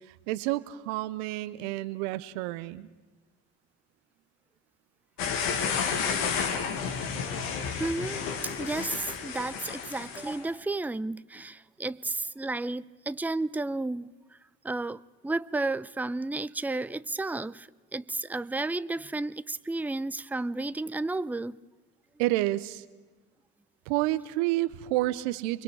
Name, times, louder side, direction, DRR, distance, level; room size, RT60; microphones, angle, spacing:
voice 1, 0.1-2.9 22.2-22.8 23.9-25.6, right 17 dB, 80° right, 0.8 m, -29 dB
sound 1, 5.2-10.4, left 6 dB, 80° left, 1.9 m, -31 dB
voice 2, 7.8-14.1 14.6-21.6, right 2 dB, 5° right, 0.6 m, -32 dB
29.5 x 22.5 x 4.8 m
hypercardioid pair, 45°, 34 cm